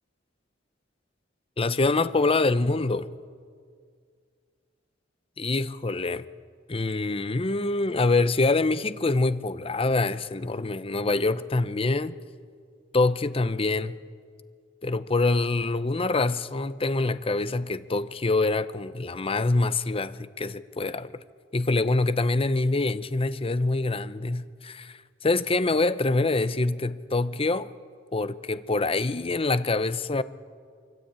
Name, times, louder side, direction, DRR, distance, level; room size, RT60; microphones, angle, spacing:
voice 1, 1.6-3.1 5.4-6.2 6.7-12.2 12.9-14.0 14.8-21.1 21.5-27.7 28.1-30.2, left 3 dB, 30° left, 0.7 m, -25 dB
25.0 x 24.0 x 8.9 m
head